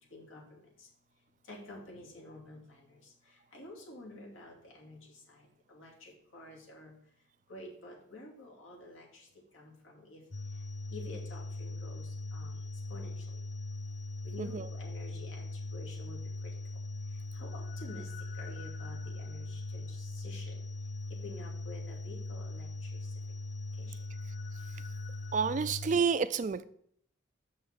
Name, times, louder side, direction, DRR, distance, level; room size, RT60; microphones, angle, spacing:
voice 1, 0.1-0.9 1.5-3.0 3.5-5.0 5.3-6.9 7.5-9.3 9.5-10.2 10.9-12.5 12.9-13.2 14.2-16.2 17.3-18.1 18.4-20.6 21.2-22.9 23.8-24.0, left 1 dB, 90° left, 2.6 m, -49 dB
sound 1, 10.3-26.0, left 2 dB, 40° left, 0.4 m, -40 dB
voice 2, 25.3-26.6, right 5 dB, 40° right, 0.3 m, -29 dB
6.6 x 5.6 x 6.0 m
head